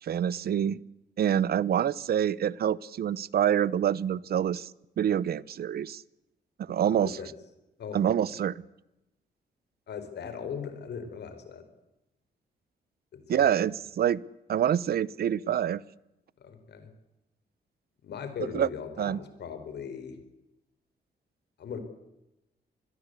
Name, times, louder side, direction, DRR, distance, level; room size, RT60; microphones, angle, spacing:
voice 1, 0.0-0.8 1.2-4.7 5.0-6.0 6.6-7.2 7.9-8.6 13.3-14.2 14.5-15.8 18.5-18.7 19.0-19.2, right 9 dB, 65° right, 21 dB, 0.8 m, -26 dB
voice 2, 6.8-7.3 7.8-8.0 9.9-11.6 13.1-13.5 16.4-16.9 18.0-20.2 21.6-21.8, left 7 dB, 75° left, 9 dB, 5.0 m, -39 dB
26.0 x 21.0 x 8.3 m, 0.94 s
wide cardioid pair, 135°, 17 cm